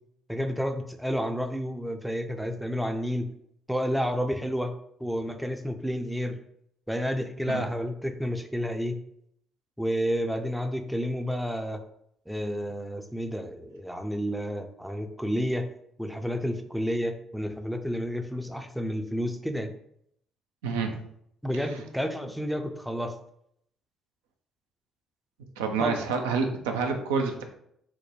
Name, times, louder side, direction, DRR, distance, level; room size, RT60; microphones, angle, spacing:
voice 1, 0.3-3.3 3.7-4.7 5.0-6.4 6.9-9.0 9.8-11.8 12.3-15.7 16.0-19.7 21.4-23.1 25.8-26.0, equal, ahead, 6 dB, 0.5 m, -30 dB
voice 2, 20.6-21.0 21.7-21.8 25.6-27.4, right 5 dB, 75° right, 4 dB, 0.4 m, -28 dB
4.2 x 2.1 x 3.2 m, 0.71 s
figure-of-eight pair, 45°, 0 cm